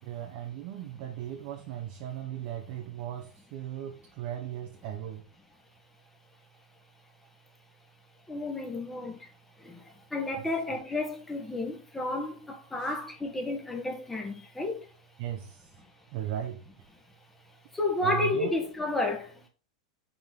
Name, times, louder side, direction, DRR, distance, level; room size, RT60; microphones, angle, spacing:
voice 1, 0.0-5.3 10.4-10.5 12.8-13.0 15.2-15.8 16.1-16.7 18.0-18.5, right 11 dB, 55° right, 1.1 m, -37 dB
voice 2, 8.3-9.3 9.6-14.9 17.7-19.5, left 2 dB, 10° left, 1.8 m, -32 dB
5.9 x 4.3 x 3.8 m
hypercardioid pair, 110°, 3 cm